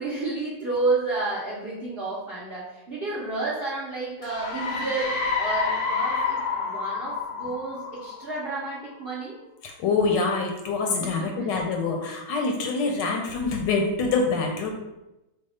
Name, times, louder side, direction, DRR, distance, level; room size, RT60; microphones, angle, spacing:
voice 1, 0.0-9.4 11.0-11.5, right 3 dB, 65° right, -7 dB, 0.5 m, -31 dB
sound 1, 4.2-8.8, left 4 dB, 60° left, 0.9 m, -29 dB
voice 2, 9.6-14.7, left 4 dB, 75° left, 2 dB, 1.2 m, -25 dB
4.8 x 2.3 x 4.1 m, 0.96 s
omnidirectional pair, 2.1 m